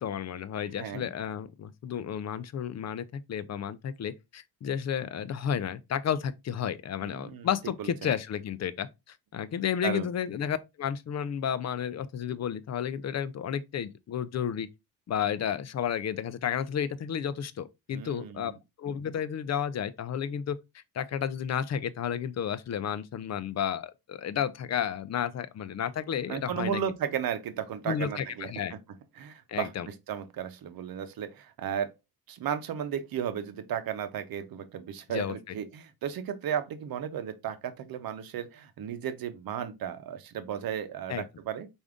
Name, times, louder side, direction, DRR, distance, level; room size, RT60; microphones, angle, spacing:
voice 1, 0.0-14.7 15.1-18.5 18.8-20.6 20.9-26.8 27.9-28.7 29.5-29.9 35.1-35.6 41.1-41.2, left 8 dB, 45° left, 0.5 m, -32 dB
voice 2, 7.0-7.5 7.8-7.9 9.8-10.1 17.9-18.6 26.3-28.8 29.2-31.9 32.3-41.7, right 9 dB, 65° right, 0.8 m, -34 dB
4.8 x 2.6 x 3.5 m
cardioid pair, 115°, 38 cm